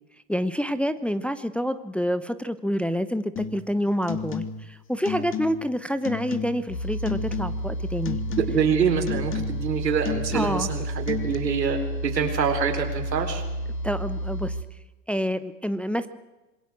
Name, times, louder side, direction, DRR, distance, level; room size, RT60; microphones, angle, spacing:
voice 1, 0.3-8.2 10.3-10.7 13.8-14.5 15.1-16.1, equal, ahead, 11 dB, 0.8 m, -27 dB
sound 1, 3.4-3.7 4.0-4.7 5.0-5.7 6.0-6.7 7.1-7.8 8.0-8.7 9.1-9.7 10.0-10.7 11.1-11.3, left 6 dB, 25° left, 2.0 m, -33 dB
sound 2, 6.7-14.6, right 1 dB, 90° left, 3.2 m, -31 dB
voice 2, 8.4-13.4, right 6 dB, 85° right, 5 dB, 4.2 m, -25 dB
26.5 x 21.5 x 6.2 m, 1.1 s
hypercardioid pair, 105°, 48 cm